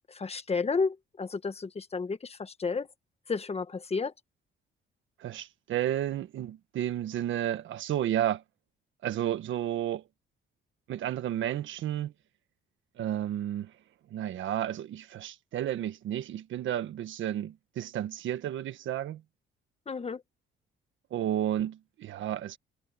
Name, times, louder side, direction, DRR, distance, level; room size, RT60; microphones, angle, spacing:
voice 1, 0.1-2.9 3.3-4.1 19.9-20.2, left 4 dB, 30° left, 1.5 m, -32 dB
voice 2, 5.2-8.4 9.0-10.0 10.9-12.1 13.0-13.7 14.1-19.2 21.1-22.6, right 11 dB, 75° right, 1.5 m, -32 dB
cardioid pair, 90°, 20 cm